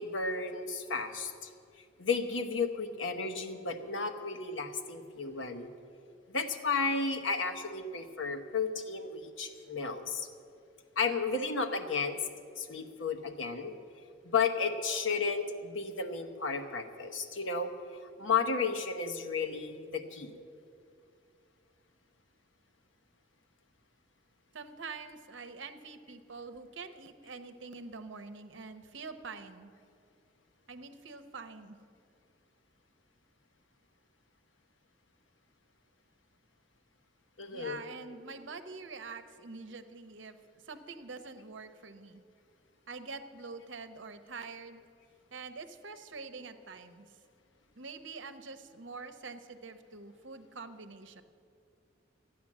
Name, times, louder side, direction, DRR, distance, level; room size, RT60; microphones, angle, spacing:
voice 1, 0.0-1.5 2.0-5.7 6.3-10.3 11.0-12.2 12.6-13.7 14.2-20.3 37.4-37.8, left 4 dB, 80° left, 6 dB, 1.1 m, -33 dB
voice 2, 24.5-29.7 30.7-31.8 37.5-40.4 40.6-42.2 42.9-44.8 45.3-47.0 47.8-51.2, right 4 dB, 70° right, 9 dB, 0.8 m, -45 dB
13.5 x 9.2 x 7.3 m, 2.4 s
head